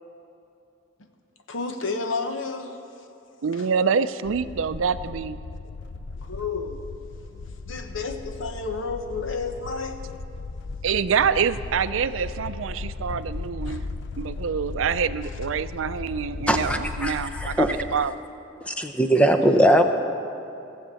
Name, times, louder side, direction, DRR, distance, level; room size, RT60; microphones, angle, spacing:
voice 1, 1.5-2.8 3.5-3.7 6.2-7.0 7.3-10.0 13.7-13.8, left 4 dB, 85° left, 6 dB, 1.1 m, -31 dB
voice 2, 3.4-5.4 10.8-13.8 14.2-18.2, right 6 dB, 90° right, 13 dB, 0.5 m, -26 dB
sound 1, 4.3-18.0, left 3 dB, 60° left, 0.5 m, -36 dB
voice 3, 16.5-17.8 18.7-19.8, right 1 dB, 5° left, 6 dB, 0.7 m, -20 dB
17.0 x 7.2 x 7.6 m, 2.8 s
head